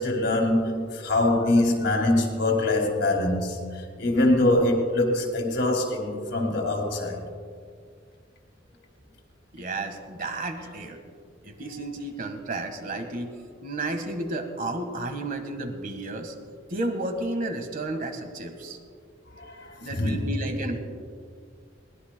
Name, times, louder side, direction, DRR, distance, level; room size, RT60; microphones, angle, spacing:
voice 1, 0.0-3.6 4.0-7.2 19.4-20.3, left 1 dB, 65° left, 2.4 m, -24 dB
voice 2, 9.5-11.0 11.4-13.3 13.6-16.3 16.7-18.8 19.8-20.8, right 2 dB, 50° right, 1.5 m, -32 dB
22.0 x 19.0 x 2.2 m
head